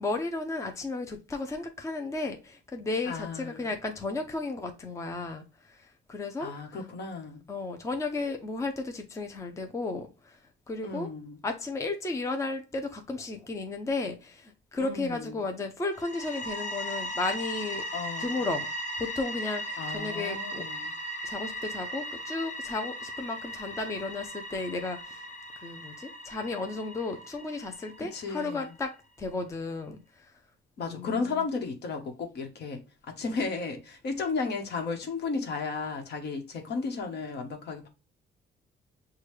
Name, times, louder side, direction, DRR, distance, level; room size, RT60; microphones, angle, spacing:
voice 1, 0.0-6.5 7.5-10.4 10.7-11.1 11.4-17.8 18.2-18.7 19.0-20.6 21.2-25.2 25.6-28.9 29.2-30.3 30.8-31.4, left 3 dB, 15° left, 0.5 m, -34 dB
voice 2, 3.0-3.7 6.4-7.4 10.8-11.4 14.8-15.3 17.9-18.4 19.8-20.9 28.0-28.7 30.8-32.8 33.1-37.9, left 4 dB, 65° left, 1.1 m, -34 dB
sound 1, 15.9-28.6, equal, 40° left, 1.0 m, -38 dB
6.3 x 2.3 x 3.1 m
cardioid pair, 125°, 19 cm